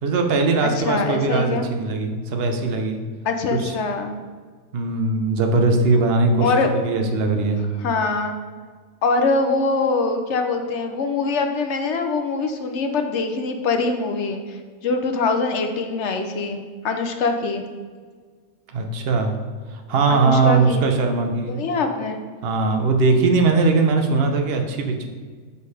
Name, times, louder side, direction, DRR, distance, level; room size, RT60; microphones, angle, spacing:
voice 1, 0.0-3.0 3.6-3.7 4.7-7.6 18.7-19.4 19.7-21.6 22.4-25.1, right 3 dB, 50° right, 4 dB, 0.9 m, -20 dB
voice 2, 0.6-1.7 3.2-4.1 6.4-7.0 7.8-8.3 9.0-14.6 14.8-16.6 16.8-17.6 20.1-20.9 21.5-22.2, left 3 dB, 60° left, 6 dB, 1.0 m, -23 dB
6.3 x 5.5 x 4.8 m, 1.6 s
omnidirectional pair, 1.5 m